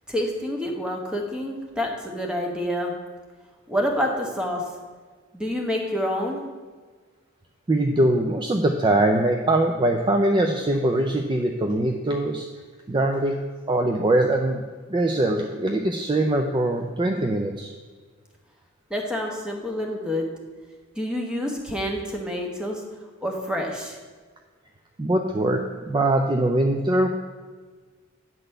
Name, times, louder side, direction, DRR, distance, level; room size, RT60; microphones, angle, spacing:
voice 1, 0.1-2.9 3.7-4.6 5.3-6.4 18.9-20.3 21.0-22.8 23.2-24.0, equal, 5° right, 0 dB, 1.1 m, -27 dB
voice 2, 7.7-12.5 12.9-13.4 13.7-14.6 14.9-17.7 25.0-27.1, right 1 dB, 20° right, 4 dB, 0.4 m, -22 dB
9.0 x 4.0 x 6.5 m, 1.5 s
head